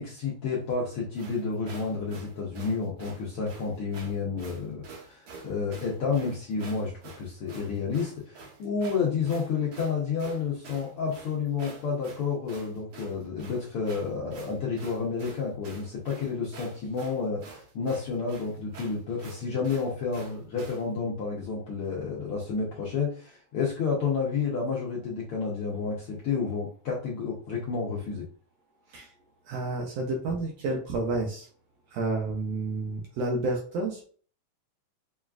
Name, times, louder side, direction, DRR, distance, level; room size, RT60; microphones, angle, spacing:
voice 1, 0.0-28.3, left 5 dB, 80° left, -4 dB, 1.2 m, -30 dB
sound 1, 1.1-20.9, right 4 dB, 65° right, 1.5 m, -47 dB
voice 2, 29.4-31.5 31.9-34.0, right 2 dB, 80° right, 1 dB, 1.5 m, -30 dB
6.0 x 2.4 x 2.3 m, 0.42 s
omnidirectional pair, 3.6 m